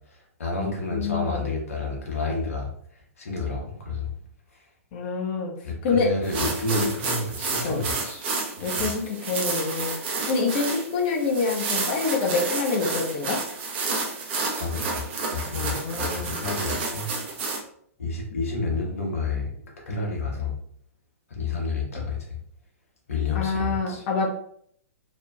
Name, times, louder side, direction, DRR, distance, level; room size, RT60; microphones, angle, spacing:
voice 1, 0.1-2.7 3.2-4.1 4.5-4.7 5.6-8.3 8.6-8.9 14.5-15.0 15.3-17.1 18.0-20.5 21.3-22.4 23.1-24.0, left 3 dB, 65° left, -1 dB, 1.4 m, -30 dB
voice 2, 0.6-1.5 4.9-5.5 5.8-6.1 7.6-7.8 8.6-13.4 15.5-16.4 23.3-24.3, left 4 dB, 40° left, 1 dB, 1.0 m, -27 dB
sound 1, 6.2-17.6, right 3 dB, 45° right, 1.0 m, -30 dB
4.7 x 3.1 x 2.4 m, 0.65 s
figure-of-eight pair, 110°, 8 cm